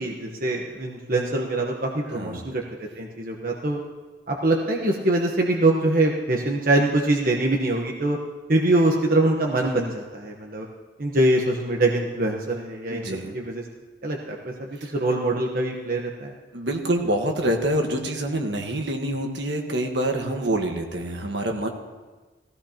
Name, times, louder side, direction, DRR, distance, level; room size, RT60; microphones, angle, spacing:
voice 1, 0.0-2.6 3.0-3.8 4.3-8.2 8.5-10.7 11.0-13.0 13.3-13.6 14.0-16.3, right 2 dB, 50° right, 0 dB, 1.1 m, -23 dB
voice 2, 2.2-2.5 12.9-13.4 14.8-14.9 16.5-21.7, right 1 dB, 70° right, 3 dB, 1.4 m, -26 dB
17.0 x 15.5 x 2.9 m, 1.3 s
head